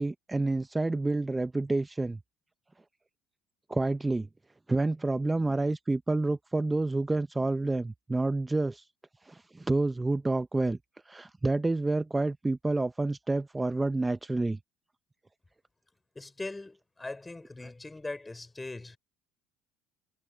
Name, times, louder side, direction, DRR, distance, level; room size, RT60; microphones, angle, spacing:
voice 1, 0.0-2.2 3.7-4.3 4.7-8.9 9.2-10.8 11.1-14.6, right 2 dB, 15° right, 0.7 m, -29 dB
voice 2, 16.2-19.0, left 2 dB, 15° left, 5.1 m, -40 dB
supercardioid pair, 85°, 0 cm